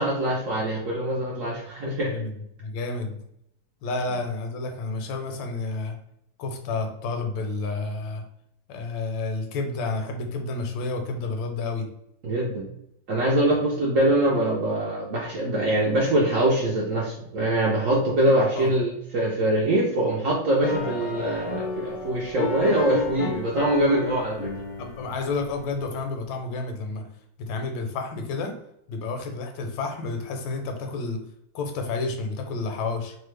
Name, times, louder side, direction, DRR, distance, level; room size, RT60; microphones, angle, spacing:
voice 1, 0.0-2.2 12.2-12.7 13.1-24.5, right 1 dB, 70° right, -4 dB, 0.7 m, -23 dB
voice 2, 2.1-3.2 3.8-6.0 6.4-8.2 8.7-11.9 18.5-18.7 24.8-27.0 27.4-28.6 28.9-31.3 31.5-33.2, left 3 dB, 85° left, 5 dB, 1.3 m, -30 dB
sound 1, 20.6-25.9, left 4 dB, 60° left, 0.6 m, -32 dB
3.1 x 2.2 x 3.2 m, 0.76 s
omnidirectional pair, 2.0 m